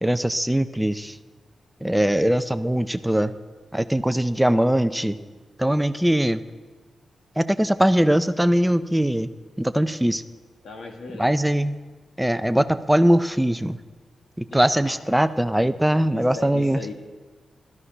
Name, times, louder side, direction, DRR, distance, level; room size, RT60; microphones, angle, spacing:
voice 1, 0.0-1.2 1.8-3.3 3.7-5.2 5.6-6.4 7.4-9.3 9.6-10.2 11.2-11.7 12.2-13.8 14.4-16.8, right 1 dB, 5° right, 11 dB, 0.5 m, -21 dB
voice 2, 10.6-11.6 14.5-15.3 15.9-16.9, left 3 dB, 85° left, 3 dB, 2.0 m, -39 dB
16.5 x 13.0 x 5.5 m, 1.4 s
wide cardioid pair, 165°, 0 cm